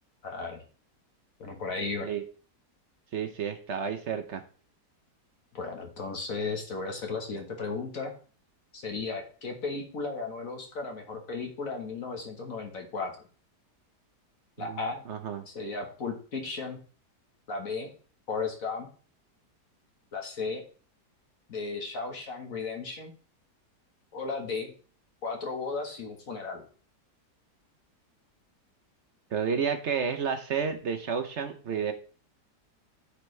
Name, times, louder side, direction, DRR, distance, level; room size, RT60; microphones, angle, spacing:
voice 1, 0.2-0.6 1.4-2.1 5.5-8.1 8.7-13.1 14.6-15.0 15.5-16.8 17.5-17.9 18.3-18.9 20.1-20.6 21.5-23.1 24.1-24.7 25.2-26.6, left 4 dB, 55° left, 3 dB, 1.5 m, -35 dB
voice 2, 3.1-4.4 14.6-14.8 15.1-15.4 29.3-31.9, right 6 dB, 60° right, 8 dB, 0.8 m, -31 dB
13.0 x 4.4 x 3.1 m, 0.40 s
omnidirectional pair, 1.8 m